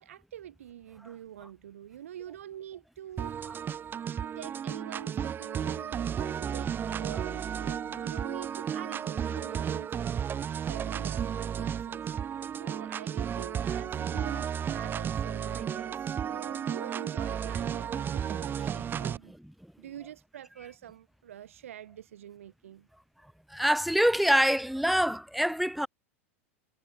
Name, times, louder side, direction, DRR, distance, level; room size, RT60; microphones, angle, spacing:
voice 1, 0.0-3.4 4.2-10.0 10.6-12.1 12.6-19.4 19.8-22.9, right 11 dB, 80° right, 2.1 m, -45 dB
sound 1, 3.2-19.2, right 8 dB, 30° right, 1.3 m, -33 dB
voice 2, 23.5-25.9, equal, ahead, 1.9 m, -26 dB
hypercardioid pair, 95°, 7 cm